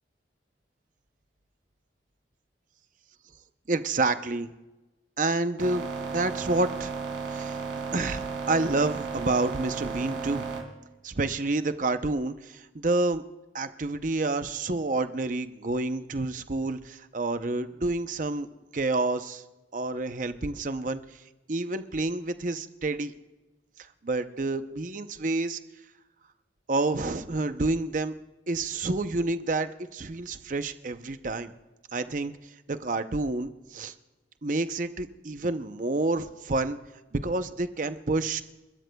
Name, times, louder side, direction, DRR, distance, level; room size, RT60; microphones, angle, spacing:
voice 1, 3.7-4.5 5.2-6.9 7.3-7.6 7.9-10.4 11.0-13.2 13.5-18.5 18.7-19.4 19.7-21.0 21.5-23.1 24.0-25.6 26.7-28.1 28.5-31.5 31.9-32.3 32.7-33.9 34.4-36.8 37.1-38.4, right 2 dB, 45° right, 10 dB, 0.6 m, -29 dB
sound 1, 5.6-10.6, right 5 dB, 75° right, 3.4 m, -34 dB
29.0 x 13.0 x 2.3 m, 1.1 s
head